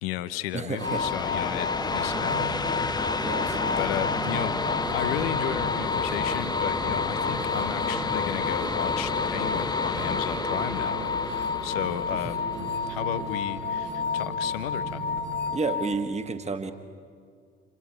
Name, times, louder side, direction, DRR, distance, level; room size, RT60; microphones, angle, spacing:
voice 1, 0.0-2.8 3.2-15.0, left 13 dB, 70° left, 14 dB, 0.9 m, -34 dB
voice 2, 0.5-1.1 3.2-4.1 15.5-16.7, right 4 dB, 20° right, 7 dB, 1.7 m, -31 dB
sound 1, 0.7-14.1, left 3 dB, 15° left, 0.8 m, -31 dB
sound 2, 0.8-15.9, left 6 dB, 35° left, 1.1 m, -31 dB
sound 3, 1.7-15.6, right 5 dB, 70° right, 2.8 m, -39 dB
27.5 x 24.5 x 4.6 m, 2.1 s
figure-of-eight pair, 45°, 31 cm